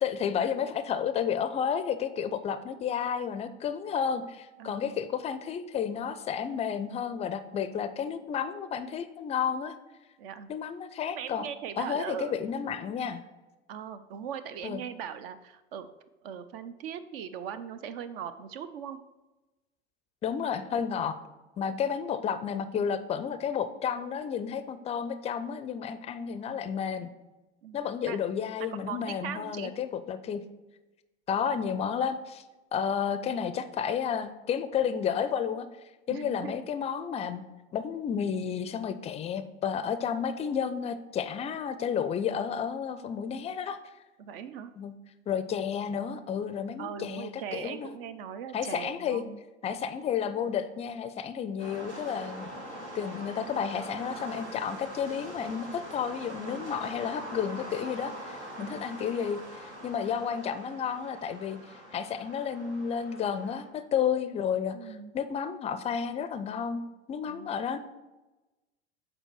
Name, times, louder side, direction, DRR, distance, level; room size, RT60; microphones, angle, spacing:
voice 1, 0.0-9.8 10.5-11.5 11.8-13.2 14.6-14.8 20.2-21.2 21.6-27.1 27.7-30.4 31.3-32.4 32.7-35.7 36.1-37.4 37.7-43.8 44.8-44.9 45.3-48.0 48.5-49.2 49.6-52.5 52.9-61.6 61.9-66.8 67.1-67.8, left 7 dB, 20° left, 12 dB, 0.4 m, -31 dB
voice 2, 4.6-4.9 10.2-10.5 11.1-12.4 13.7-15.9 16.2-19.0 27.6-28.2 28.6-29.7 36.1-36.5 44.2-44.7 46.8-49.4 56.4-56.7 58.6-58.8 64.7-65.1 67.3-67.6, right 8 dB, 55° right, 12 dB, 0.6 m, -40 dB
sound 1, 51.6-63.7, right 1 dB, 85° right, 1.6 m, -43 dB
7.7 x 4.4 x 4.5 m, 1.1 s
figure-of-eight pair, 75°, 33 cm